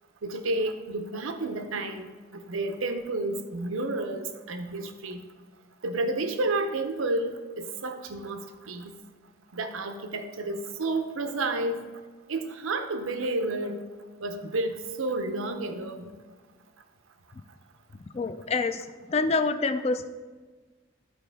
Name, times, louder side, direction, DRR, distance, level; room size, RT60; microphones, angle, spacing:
voice 1, 0.2-5.3 5.8-8.9 9.5-11.8 12.3-13.8 14.2-16.0, right 2 dB, 90° right, 7 dB, 0.7 m, -31 dB
voice 2, 18.1-20.0, left 3 dB, 30° left, 9 dB, 0.4 m, -27 dB
13.0 x 4.5 x 3.4 m, 1.4 s
head